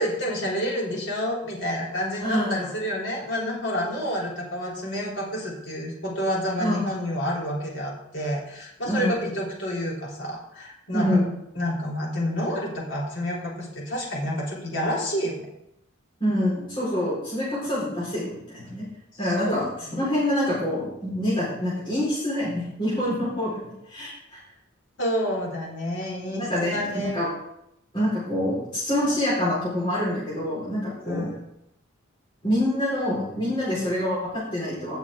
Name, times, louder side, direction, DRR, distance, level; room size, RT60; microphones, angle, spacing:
voice 1, 0.0-11.1 11.6-15.5 19.1-20.2 25.0-27.2 31.1-31.4, equal, 65° left, -4 dB, 3.5 m, -29 dB
voice 2, 2.2-2.7 6.6-6.8 8.8-9.1 10.9-11.3 16.2-18.8 19.2-19.6 20.0-24.1 26.4-27.3 27.9-31.3 32.4-35.0, left 1 dB, 25° left, -9 dB, 4.6 m, -26 dB
17.0 x 7.2 x 3.7 m, 0.81 s
head